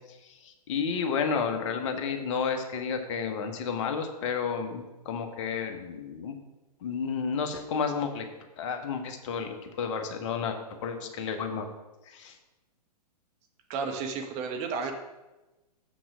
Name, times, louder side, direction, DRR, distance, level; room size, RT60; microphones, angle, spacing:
voice 1, 0.1-6.4 6.8-8.3 8.6-11.7 12.1-12.4, left 6 dB, 45° left, 6 dB, 1.2 m, -31 dB
voice 2, 13.7-14.9, right 5 dB, 35° right, 4 dB, 1.1 m, -32 dB
7.2 x 6.1 x 6.2 m, 1.1 s
figure-of-eight pair, 110°, 21 cm